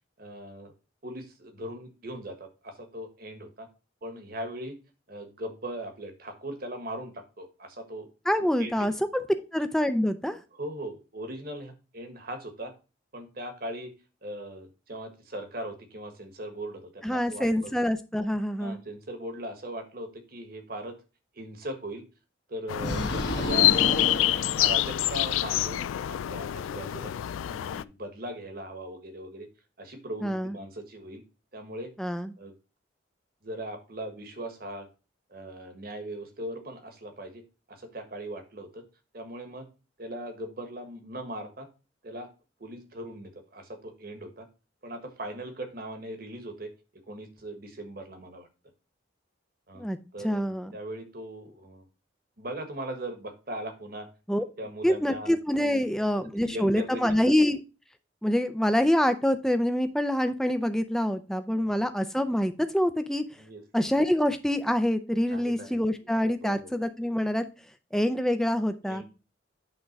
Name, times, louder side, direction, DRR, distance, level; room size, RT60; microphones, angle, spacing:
voice 1, 0.2-0.7 1.0-3.7 4.0-4.8 5.1-8.1 8.6-8.9 10.5-12.7 13.1-13.9 14.2-17.7 18.6-21.0 21.3-22.0 22.5-24.0 24.6-27.1 27.5-29.5 29.8-31.2 31.5-31.9 32.4-32.5 33.4-34.9 35.3-37.4 37.7-38.8 39.1-39.7 40.0-41.7 42.0-42.3 42.6-44.5 44.8-46.7 47.1-48.5 49.7-51.9 52.4-54.1 54.6-55.3 55.7-57.3 61.5-61.8 63.4-63.6 65.3-66.1 66.4-66.7 68.8-69.0, right 1 dB, 50° right, 6 dB, 1.4 m, -39 dB
voice 2, 8.3-9.2 9.5-10.4 17.0-18.8 30.2-30.5 32.0-32.3 49.8-50.0 50.2-50.7 54.3-54.4 54.8-57.6 58.2-63.2 63.7-67.4 67.9-69.0, equal, ahead, 9 dB, 0.5 m, -26 dB
sound 1, 22.7-27.8, left 14 dB, 85° left, 0.3 m, -26 dB
sound 2, 22.8-25.3, left 1 dB, 55° left, 1.6 m, -31 dB
8.8 x 3.7 x 5.2 m, 0.32 s
head